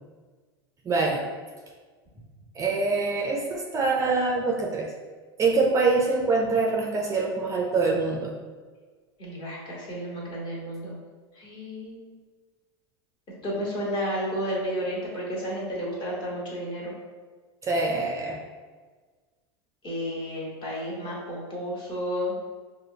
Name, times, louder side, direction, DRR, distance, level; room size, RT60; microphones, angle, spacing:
voice 1, 0.8-1.3 2.6-4.9 5.4-8.3 17.6-18.4, right 3 dB, 25° right, 0 dB, 0.4 m, -24 dB
voice 2, 9.2-11.0 11.3-12.1 13.4-17.0 19.8-22.4, equal, 35° left, -5 dB, 1.5 m, -32 dB
4.8 x 2.1 x 2.7 m, 1.4 s
hypercardioid pair, 105°, 13 cm